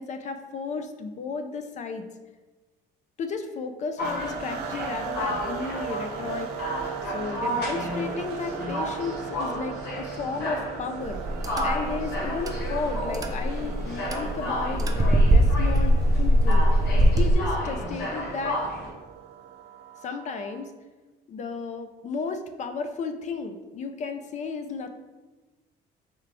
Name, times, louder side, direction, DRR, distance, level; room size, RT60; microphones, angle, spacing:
voice 1, 0.0-2.1 3.2-6.5 7.0-11.2 11.6-16.7 17.2-18.6 20.0-20.7 21.3-24.9, left 4 dB, 45° left, 8 dB, 0.4 m, -33 dB
sound 1, 4.0-18.9, left 1 dB, 75° left, 1.1 m, -33 dB
sound 2, 4.0-20.7, right 8 dB, 90° right, 0.5 m, -38 dB
sound 3, 11.0-17.3, equal, 20° right, 0.4 m, -22 dB
4.5 x 2.4 x 3.4 m, 1.2 s
cardioid pair, 110°, 17 cm